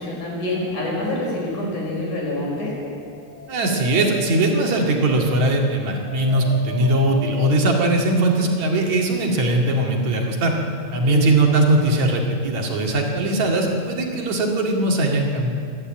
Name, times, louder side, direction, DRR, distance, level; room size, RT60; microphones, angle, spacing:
voice 1, 0.0-2.7 10.9-11.3, left 1 dB, 85° left, -2 dB, 6.8 m, -26 dB
Dog, 2.8-8.4, equal, 15° left, 2.9 m, -37 dB
voice 2, 3.5-10.5 10.9-15.5, right 2 dB, 70° right, 1 dB, 3.5 m, -20 dB
27.0 x 11.5 x 8.8 m, 2.5 s
omnidirectional pair, 3.4 m